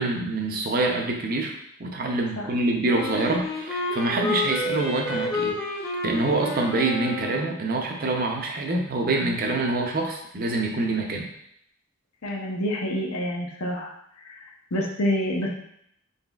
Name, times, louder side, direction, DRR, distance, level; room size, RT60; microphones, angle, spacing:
voice 1, 0.0-1.5 1.8-11.3, right 2 dB, 40° right, 1 dB, 0.6 m, -26 dB
Wind instrument woodwind instrument, 2.9-7.6, left 2 dB, 15° left, 0.6 m, -30 dB
voice 2, 12.2-13.9 14.2-14.4 14.7-15.5, equal, 90° left, -1 dB, 0.8 m, -27 dB
4.1 x 4.0 x 2.3 m, 0.73 s
head